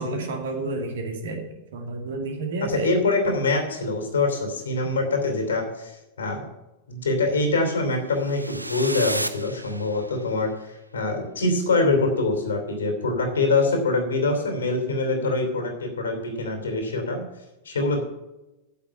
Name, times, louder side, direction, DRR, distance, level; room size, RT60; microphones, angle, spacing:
voice 1, 0.0-1.4 1.7-3.0 4.8-5.1, right 3 dB, 60° right, 4 dB, 2.2 m, -30 dB
voice 2, 2.6-6.4 6.9-17.2 17.6-18.0, left 3 dB, 70° left, 4 dB, 3.0 m, -24 dB
sound 1, 8.2-10.4, right 1 dB, 85° right, 0.5 m, -32 dB
8.5 x 7.4 x 8.7 m, 0.99 s
figure-of-eight pair, 90°, 0 cm